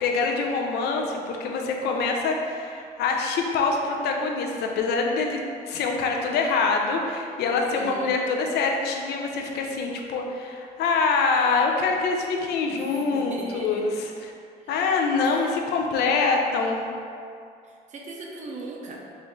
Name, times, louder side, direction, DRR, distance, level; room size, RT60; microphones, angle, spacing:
voice 1, 0.0-5.4 5.7-14.3 14.7-16.8, left 4 dB, 75° left, 2 dB, 0.5 m, -25 dB
voice 2, 7.7-8.2 12.7-13.8 15.2-15.4 17.6-19.0, right 3 dB, 45° right, -1 dB, 0.6 m, -39 dB
4.4 x 2.6 x 3.5 m, 2.4 s
cardioid pair, 110°, 17 cm